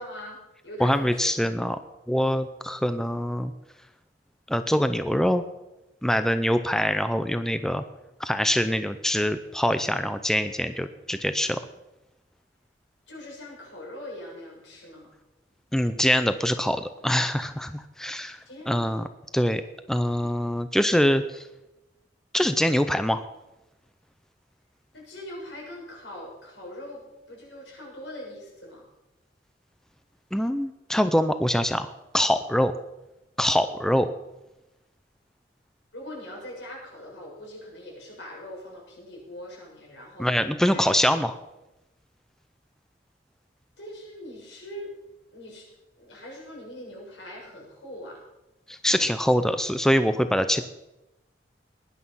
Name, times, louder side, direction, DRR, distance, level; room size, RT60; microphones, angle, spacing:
voice 1, 0.0-1.7 13.1-15.1 18.5-18.9 24.9-28.9 35.9-40.9 43.8-44.9 45.3-45.7 46.0-48.2, left 1 dB, 85° left, -2 dB, 6.4 m, -42 dB
voice 2, 0.8-1.8 2.1-3.5 4.5-5.4 6.0-7.8 8.2-11.6 15.7-18.4 18.7-19.0 19.3-19.6 19.9-21.4 22.3-23.2 30.3-32.7 33.4-34.1 40.2-41.3 48.7-50.6, equal, 5° left, 10 dB, 0.5 m, -24 dB
18.5 x 11.0 x 5.6 m, 0.96 s
head